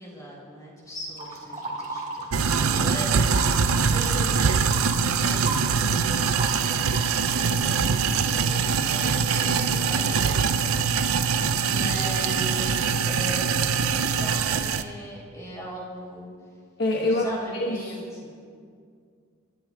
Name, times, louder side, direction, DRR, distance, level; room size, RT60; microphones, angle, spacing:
voice 1, 0.0-10.6 10.9-16.3 16.9-18.3, equal, 15° left, -5 dB, 3.6 m, -39 dB
sound 1, 1.2-2.7 2.9-7.4, right 3 dB, 30° right, 1.9 m, -35 dB
sound 2, 2.3-14.8, right 5 dB, 75° right, 0.5 m, -23 dB
voice 2, 16.8-17.3 17.5-18.0, left 2 dB, 50° left, -1 dB, 1.2 m, -25 dB
27.5 x 12.5 x 2.4 m, 2.2 s
head